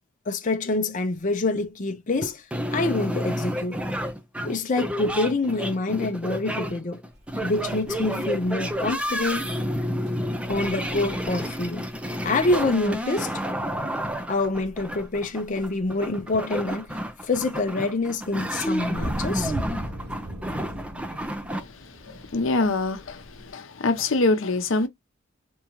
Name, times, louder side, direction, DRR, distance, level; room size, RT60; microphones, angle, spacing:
voice 1, 0.3-2.4 2.7-3.8 4.4-7.0 7.4-9.5 10.5-11.9 12.2-13.3 14.3-16.9 17.2-19.5, left 2 dB, 40° left, 0.6 m, -26 dB
sound 1, 2.5-21.6, equal, 5° right, 0.6 m, -30 dB
sound 2, 7.1-23.5, equal, 60° right, 1.2 m, -40 dB
voice 2, 21.6-24.9, left 3 dB, 85° left, 0.7 m, -25 dB
3.5 x 3.0 x 2.9 m
head